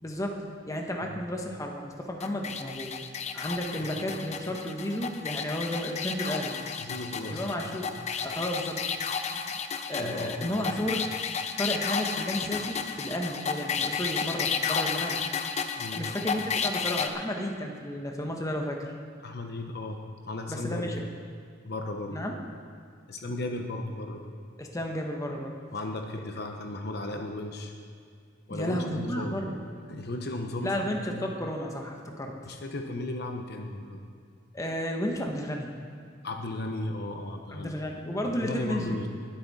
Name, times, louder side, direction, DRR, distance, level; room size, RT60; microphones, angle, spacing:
voice 1, 0.0-3.0 3.3-6.5 7.3-8.8 9.9-11.1 11.6-15.2 15.9-18.9 20.5-20.9 22.1-22.3 24.6-25.5 28.5-29.6 30.6-32.4 34.5-35.7 37.5-39.0, equal, 15° left, 1 dB, 1.2 m, -32 dB
sound 1, 2.2-17.1, left 6 dB, 35° left, 0.6 m, -32 dB
voice 2, 6.8-7.8 8.1-8.3 9.9-10.9 15.8-16.1 19.2-20.9 21.6-22.3 23.1-24.3 25.7-27.7 28.5-29.3 29.9-31.3 32.4-34.0 36.2-37.7 38.2-39.1, left 2 dB, 55° left, 3 dB, 0.9 m, -36 dB
20.5 x 8.3 x 4.2 m, 2.3 s
head